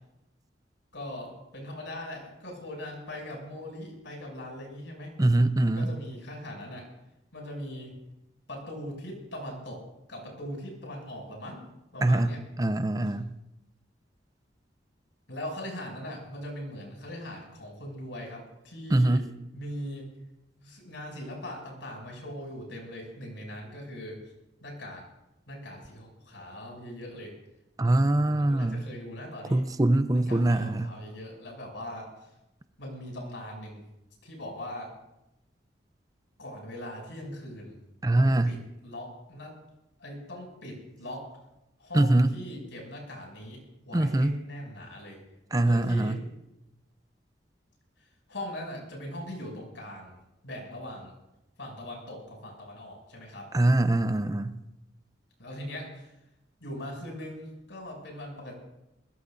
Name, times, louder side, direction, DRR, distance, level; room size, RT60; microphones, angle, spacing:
voice 1, 0.9-5.1 5.7-6.9 7.3-7.9 8.5-9.8 10.1-11.6 11.9-12.4 15.3-19.2 19.5-20.1 20.6-24.2 24.6-25.0 25.5-27.3 28.2-29.6 30.1-32.3 32.8-33.8 34.2-34.9 36.4-37.8 38.2-38.6 38.8-39.6 40.0-41.3 41.8-45.2 45.6-46.2 48.3-50.2 50.4-51.1 51.6-53.5 55.4-56.1 56.6-58.5, left 1 dB, 80° left, 0 dB, 6.9 m, -40 dB
voice 2, 5.2-5.9 12.0-13.3 18.9-19.2 27.8-28.9 29.5-30.9 38.0-38.6 41.9-42.3 43.9-44.3 45.5-46.2 53.5-54.6, right 1 dB, 20° right, 10 dB, 0.5 m, -23 dB
21.5 x 21.0 x 2.6 m, 0.90 s
head